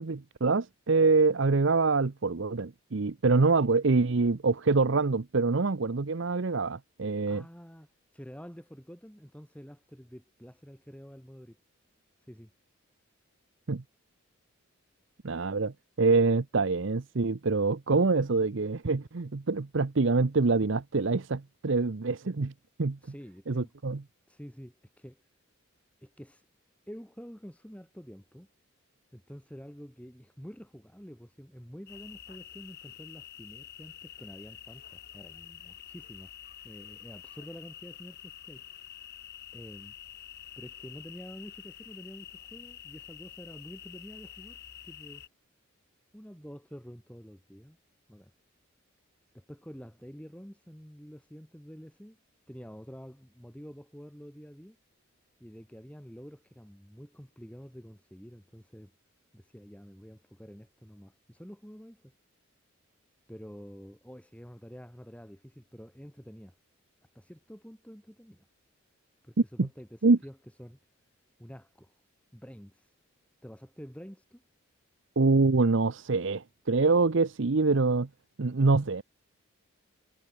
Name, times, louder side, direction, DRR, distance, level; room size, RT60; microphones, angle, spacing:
voice 1, 0.0-7.4 13.7-13.8 15.2-22.5 22.8-23.0 23.5-24.0 69.6-69.7 70.0-70.2 75.2-78.1 78.4-79.0, right 3 dB, 60° right, 0.7 m, -25 dB
voice 2, 7.3-11.6 12.3-12.5 23.0-23.7 24.3-25.2 26.0-26.4 26.9-28.5 29.1-36.3 36.6-38.6 39.5-39.9 40.6-44.6 44.8-45.2 46.1-47.8 48.1-48.3 49.3-52.2 52.5-54.8 55.4-58.9 59.3-62.1 63.3-66.6 67.1-68.5 69.2-70.8 71.4-72.0 72.3-72.9 73.4-74.4, equal, 5° left, 3.1 m, -48 dB
sound 1, 31.9-45.3, left 10 dB, 50° left, 5.7 m, -48 dB
head